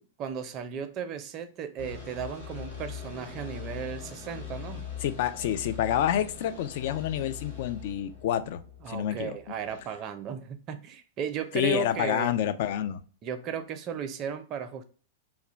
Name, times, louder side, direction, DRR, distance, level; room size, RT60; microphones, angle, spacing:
voice 1, 0.2-4.9 8.8-12.3 13.2-14.8, right 7 dB, 35° right, 0.4 m, -35 dB
sound 1, 1.8-9.8, left 7 dB, 75° left, 0.7 m, -42 dB
voice 2, 5.0-8.6 8.9-9.4 11.5-13.0, left 10 dB, 55° left, 0.3 m, -28 dB
2.3 x 2.1 x 3.8 m
hypercardioid pair, 100°, 0 cm